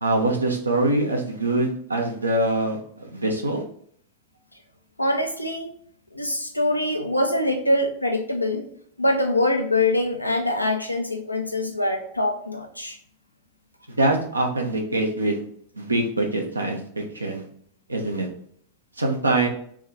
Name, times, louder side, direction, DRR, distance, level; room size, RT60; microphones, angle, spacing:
voice 1, 0.0-2.8 3.1-3.6 13.9-15.4 15.8-17.4 17.9-18.3 19.0-19.5, right 2 dB, 80° right, 1 dB, 0.8 m, -24 dB
voice 2, 5.0-5.7 6.1-8.7 9.0-13.0, left 1 dB, 85° left, 4 dB, 0.6 m, -24 dB
3.6 x 3.1 x 3.5 m, 0.63 s
figure-of-eight pair, 90°, 0 cm